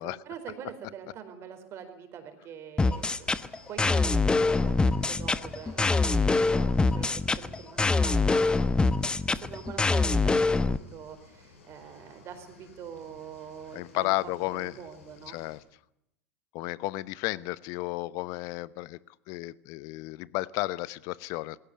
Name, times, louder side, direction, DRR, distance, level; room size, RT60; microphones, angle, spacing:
voice 1, 0.0-3.3 3.7-8.4 9.3-15.4, right 8 dB, 40° right, 8 dB, 4.4 m, -45 dB
sound 1, 2.8-10.8, left 3 dB, 10° left, 1.0 m, -24 dB
sound 2, 2.9-15.6, left 3 dB, 75° left, 6.7 m, -56 dB
voice 2, 13.7-14.7 15.3-15.6 16.5-19.0 19.3-21.6, left 20 dB, 50° left, 19 dB, 0.9 m, -33 dB
21.0 x 17.0 x 9.8 m, 0.80 s
figure-of-eight pair, 85°, 7 cm